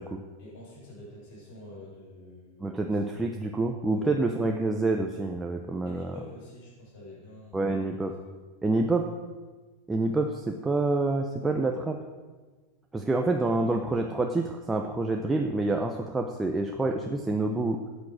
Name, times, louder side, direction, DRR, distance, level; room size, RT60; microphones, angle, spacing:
voice 1, 0.4-2.6 2.9-3.0 3.9-4.1 5.8-7.9 13.5-13.9, left 1 dB, 45° left, -5 dB, 4.9 m, -47 dB
voice 2, 2.6-6.1 7.5-8.1 8.6-9.0 9.9-12.0 12.9-17.8, right 2 dB, 5° right, 2 dB, 0.6 m, -27 dB
13.5 x 8.5 x 6.4 m, 1.3 s
supercardioid pair, 170°, 0 cm